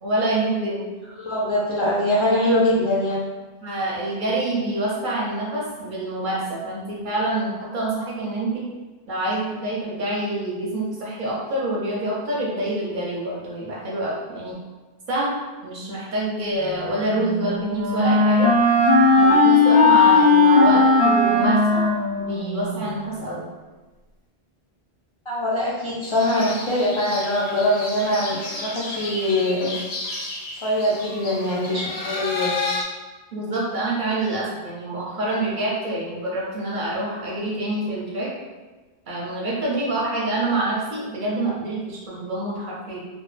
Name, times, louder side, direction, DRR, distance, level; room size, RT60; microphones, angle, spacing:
voice 1, 0.0-0.9 3.6-8.6 9.1-14.6 15.1-15.3 15.6-18.5 19.2-21.9 22.2-23.4 33.3-38.3 39.1-43.0, right 1 dB, 55° right, -5 dB, 0.7 m, -26 dB
voice 2, 1.2-3.2 25.3-29.7 30.6-32.5, left 1 dB, 50° left, -7 dB, 0.3 m, -22 dB
Wind instrument woodwind instrument, 17.0-22.8, left 3 dB, 10° right, 0.5 m, -17 dB
sound 1, 26.0-32.8, left 3 dB, 75° left, 0.8 m, -32 dB
2.2 x 2.0 x 3.1 m, 1.2 s
omnidirectional pair, 1.1 m